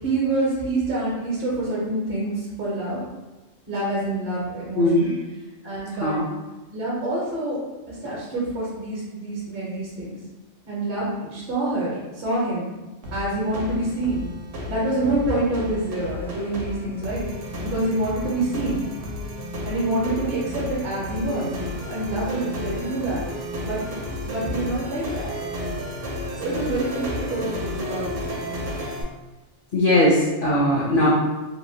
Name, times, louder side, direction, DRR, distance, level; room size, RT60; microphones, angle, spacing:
voice 1, 0.0-3.0 3.7-5.1 5.6-6.2 6.7-7.6 7.9-10.2 10.7-12.7 13.1-14.3 14.7-17.3 17.6-18.8 19.6-21.5 21.8-23.2 23.6-23.9 24.2-25.3 26.4-28.4, right 2 dB, 50° right, -7 dB, 0.8 m, -26 dB
voice 2, 4.8-5.1 6.0-6.2 29.7-31.1, left 1 dB, 55° left, -5 dB, 0.6 m, -19 dB
sound 1, 13.0-29.0, left 1 dB, 85° right, 0.9 m, -32 dB
2.9 x 2.2 x 2.6 m, 1.1 s
omnidirectional pair, 1.2 m